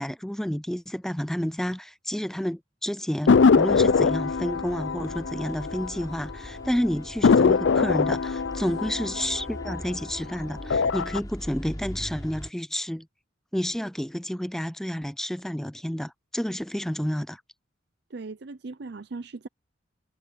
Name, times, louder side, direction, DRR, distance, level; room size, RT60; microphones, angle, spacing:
voice 1, 0.0-13.1 13.5-17.4, equal, ahead, 0.3 m, -30 dB
sound 1, 3.3-6.3 6.6-6.7 7.2-10.2 10.6-11.2, left 5 dB, 70° left, 0.5 m, -22 dB
sound 2, 3.4-12.5, equal, 20° left, 3.7 m, -41 dB
voice 2, 18.1-19.5, right 3 dB, 55° right, 0.6 m, -38 dB
head